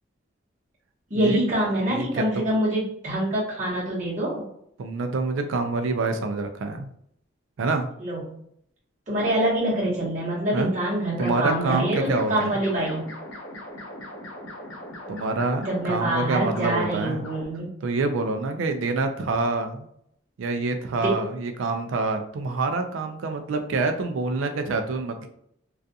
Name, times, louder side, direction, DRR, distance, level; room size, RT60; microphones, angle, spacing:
voice 1, 1.1-4.4 8.0-8.2 9.1-13.1 15.6-17.7 21.0-21.2, right 1 dB, 40° right, -7 dB, 1.0 m, -25 dB
voice 2, 1.9-2.5 4.8-6.9 7.6-7.9 10.5-10.7 11.2-12.6 15.1-17.2 17.8-19.9 20.4-25.3, right 3 dB, 80° right, 6 dB, 0.4 m, -26 dB
sound 1, 11.2-17.4, left 1 dB, 80° left, 0.7 m, -39 dB
2.4 x 2.3 x 2.6 m, 0.70 s
head